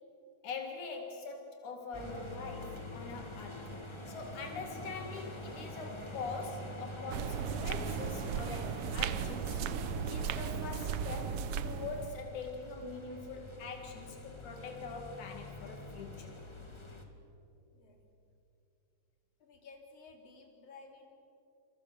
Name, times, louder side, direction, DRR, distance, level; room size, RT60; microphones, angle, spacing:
voice 1, 0.4-3.7 4.1-9.6 10.1-16.3, left 4 dB, 85° left, 3 dB, 3.6 m, -43 dB
sound 1, 1.9-17.0, left 1 dB, 10° left, 1.8 m, -45 dB
sound 2, 7.1-12.2, right 8 dB, 70° right, 1.5 m, -36 dB
voice 2, 19.4-21.1, left 4 dB, 55° left, 1 dB, 4.7 m, -55 dB
28.5 x 28.0 x 6.9 m, 2.7 s
omnidirectional pair, 3.3 m